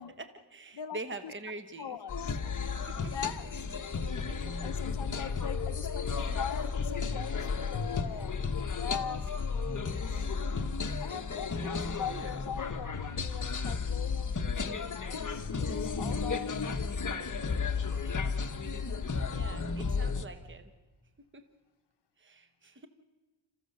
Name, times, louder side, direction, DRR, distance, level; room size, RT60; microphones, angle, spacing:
voice 1, 0.2-2.0 2.9-3.1 4.3-4.4 11.6-11.7 12.1-12.4 19.0-20.7 21.3-21.4 22.2-22.9, right 2 dB, 25° right, 1.1 m, -44 dB
voice 2, 0.7-1.3 1.8-2.4 3.1-3.8 4.4-10.3 11.0-16.5 17.3-17.9, left 8 dB, 60° left, 0.9 m, -42 dB
sound 1, 2.1-20.3, left 5 dB, 40° left, 1.1 m, -33 dB
27.5 x 14.5 x 6.7 m
wide cardioid pair, 115°, 46 cm